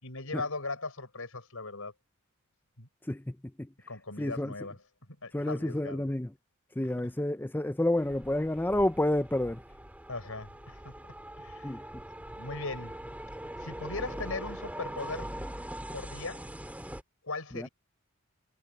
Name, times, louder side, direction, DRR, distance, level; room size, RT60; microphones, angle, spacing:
voice 1, 0.0-1.9 2.8-2.9 3.9-4.8 5.2-6.1 7.0-7.1 10.1-11.0 11.4-11.8 12.3-13.0 13.6-15.3 15.9-16.5 17.2-17.7, left 3 dB, 70° left, 6.9 m, -39 dB
voice 2, 3.1-3.7 4.2-4.5 5.3-6.3 6.8-9.6 11.6-11.8 17.5-17.7, left 1 dB, 10° left, 0.6 m, -29 dB
sound 1, 8.0-17.0, right 1 dB, 5° right, 2.5 m, -42 dB
head